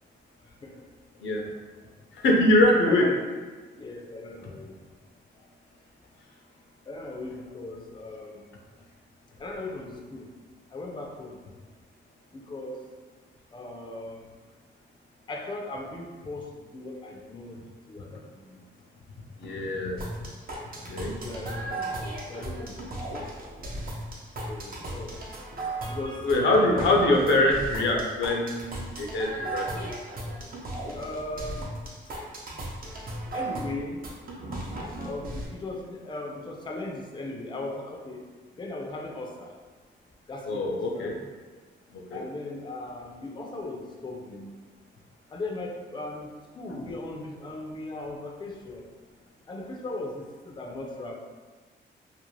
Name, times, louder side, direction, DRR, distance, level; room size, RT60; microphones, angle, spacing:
voice 1, 0.4-0.8 2.8-3.2 3.8-4.8 6.9-8.5 9.4-10.3 10.7-11.4 12.3-12.8 13.5-14.3 15.3-17.6 17.9-18.6 21.2-22.0 22.3-22.8 24.4-25.3 25.9-26.2 26.6-26.9 29.5-29.6 30.9-31.7 32.1-32.2 33.3-34.1 35.0-38.3 38.6-39.5 40.3-41.1 42.1-44.5 45.3-48.8 49.5-51.1, left 2 dB, 25° left, 1 dB, 0.4 m, -38 dB
voice 2, 2.1-3.1 19.4-20.1 20.9-21.1 26.2-29.9 40.5-41.1 41.9-42.2, left 1 dB, 70° left, 0 dB, 0.6 m, -23 dB
sound 1, 20.0-35.5, right 1 dB, 50° right, 0.6 m, -36 dB
2.5 x 2.1 x 3.1 m, 1.4 s
cardioid pair, 70°, 20 cm